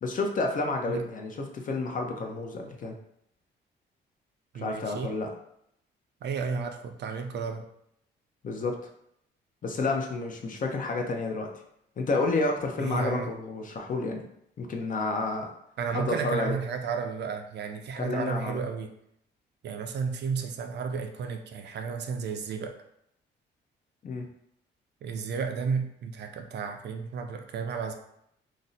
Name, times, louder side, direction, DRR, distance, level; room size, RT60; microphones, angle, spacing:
voice 1, 0.0-3.0 4.5-5.3 8.4-8.8 9.6-11.5 12.0-14.2 14.6-15.5 15.9-16.6 18.0-18.6 24.0-24.2, left 3 dB, 40° left, 2 dB, 0.6 m, -30 dB
voice 2, 4.5-5.1 6.2-7.6 12.8-13.3 15.8-18.9 19.6-22.7 25.0-27.9, right 5 dB, 60° right, 6 dB, 0.4 m, -32 dB
2.6 x 2.1 x 3.9 m, 0.75 s
cardioid pair, 90°, 20 cm